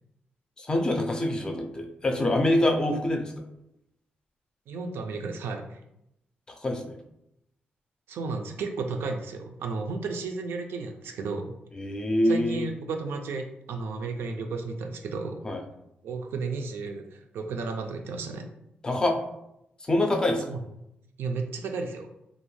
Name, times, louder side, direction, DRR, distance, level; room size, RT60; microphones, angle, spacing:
voice 1, 0.6-3.3 6.5-7.0 11.7-12.7 15.4-15.6 18.8-19.2 19.8-20.6, left 1 dB, 20° left, 3 dB, 0.4 m, -25 dB
voice 2, 4.7-5.8 8.1-11.6 12.2-15.4 16.0-18.5 20.5-20.6 21.2-22.1, right 4 dB, 90° right, 4 dB, 0.4 m, -33 dB
2.5 x 2.2 x 3.0 m, 0.81 s
cardioid pair, 125°, 4 cm